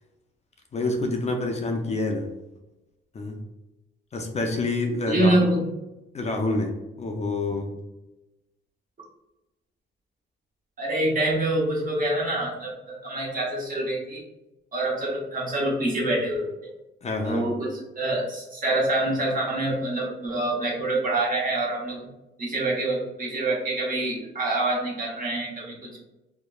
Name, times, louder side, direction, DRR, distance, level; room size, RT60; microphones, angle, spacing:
voice 1, 0.7-2.3 3.1-3.4 4.1-5.5 6.1-7.7 17.0-17.5, left 2 dB, 35° left, 3 dB, 0.4 m, -27 dB
voice 2, 5.1-5.6 10.8-14.2 14.7-16.5 17.2-22.1 22.4-26.0, right 1 dB, 45° right, -3 dB, 1.0 m, -26 dB
2.9 x 2.1 x 2.3 m, 0.98 s
cardioid pair, 90°, 20 cm